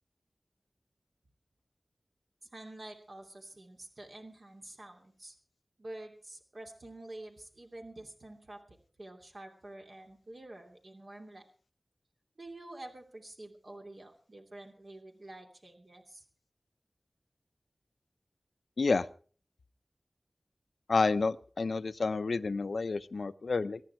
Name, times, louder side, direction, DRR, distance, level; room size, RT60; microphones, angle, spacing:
voice 1, 2.5-5.4 5.8-11.4 12.4-16.2, right 1 dB, 55° right, 2 dB, 2.7 m, -48 dB
voice 2, 20.9-23.8, left 4 dB, 85° left, 14 dB, 0.7 m, -29 dB
23.0 x 10.5 x 4.6 m, 0.42 s
wide cardioid pair, 75°, 0 cm